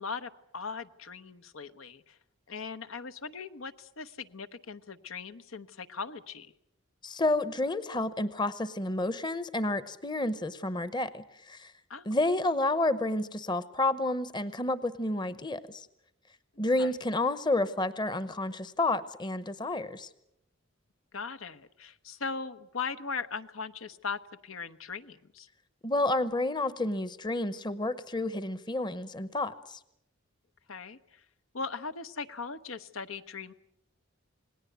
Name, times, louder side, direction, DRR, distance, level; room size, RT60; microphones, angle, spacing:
voice 1, 0.0-2.2 2.5-6.5 11.9-12.1 16.8-16.9 21.1-25.5 30.7-31.2 31.5-33.5, left 5 dB, 80° left, 10 dB, 1.0 m, -39 dB
voice 2, 7.0-11.7 12.1-15.9 16.6-20.1 25.8-29.8, left 2 dB, 20° left, 14 dB, 0.9 m, -30 dB
28.0 x 19.5 x 8.0 m, 0.81 s
head